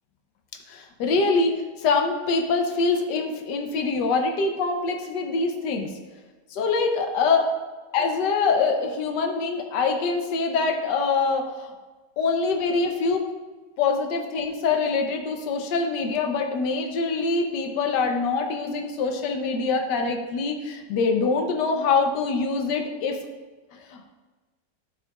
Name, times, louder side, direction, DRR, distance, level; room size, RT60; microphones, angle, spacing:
voice 1, 0.7-5.9 6.5-7.5 7.9-11.7 12.2-13.3 13.8-23.2 23.8-24.0, left 4 dB, 75° left, 3 dB, 1.4 m, -24 dB
13.5 x 4.8 x 2.4 m, 1.3 s
omnidirectional pair, 1.9 m